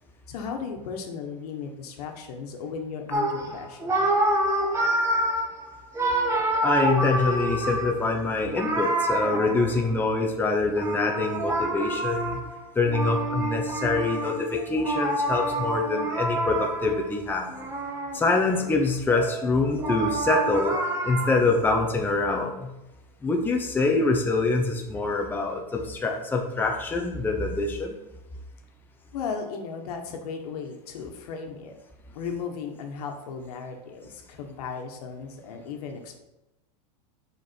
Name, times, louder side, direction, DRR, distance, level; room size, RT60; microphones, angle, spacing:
voice 1, 0.3-4.1 29.1-31.7 32.1-36.2, left 5 dB, 70° left, 3 dB, 1.4 m, -36 dB
sound 1, 3.1-10.1 10.7-17.0 17.5-18.7 19.1-21.4, right 1 dB, 15° right, 1.1 m, -27 dB
voice 2, 6.6-12.4 12.7-17.5 18.1-20.8 21.0-22.7 23.2-27.9, left 3 dB, 10° left, 1 dB, 0.8 m, -25 dB
6.8 x 5.1 x 4.5 m, 0.95 s
supercardioid pair, 130°, 20 cm